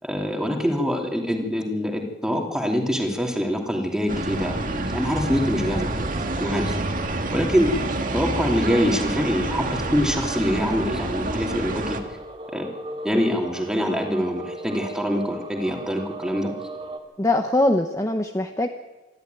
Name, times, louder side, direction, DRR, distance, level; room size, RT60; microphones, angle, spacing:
voice 1, 0.0-6.1 6.4-6.8 7.3-7.9 8.1-12.0 12.5-16.5, equal, 5° right, 1 dB, 2.8 m, -25 dB
sound 1, 4.1-12.0, right 2 dB, 50° right, 1.8 m, -28 dB
sound 2, 6.1-17.0, right 2 dB, 30° right, 2.5 m, -38 dB
voice 2, 17.2-18.7, left 1 dB, 15° left, 5 dB, 0.9 m, -22 dB
26.5 x 12.0 x 9.3 m, 1.1 s
head